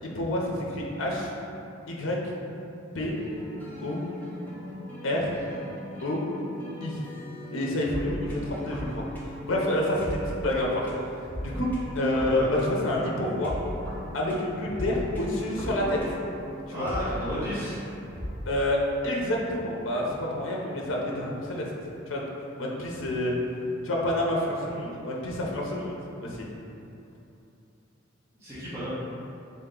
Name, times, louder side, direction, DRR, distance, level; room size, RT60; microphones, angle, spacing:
voice 1, 0.0-1.3 1.9-2.3 2.9-3.1 3.8-4.0 5.0-5.3 6.0-6.2 6.8-7.0 7.5-9.0 9.5-10.9 11.4-11.7 11.9-13.5 14.1-16.0 16.7-16.9 18.5-21.6 22.1-22.3 22.6-23.3 23.8-26.0 26.2-26.5, left 1 dB, 70° left, -2 dB, 0.6 m, -28 dB
sound 1, 3.1-18.3, equal, 10° left, 0.6 m, -38 dB
voice 2, 12.2-12.5 16.7-17.9 28.4-29.0, equal, 15° right, -13 dB, 1.0 m, -32 dB
3.7 x 2.8 x 3.7 m, 2.8 s
head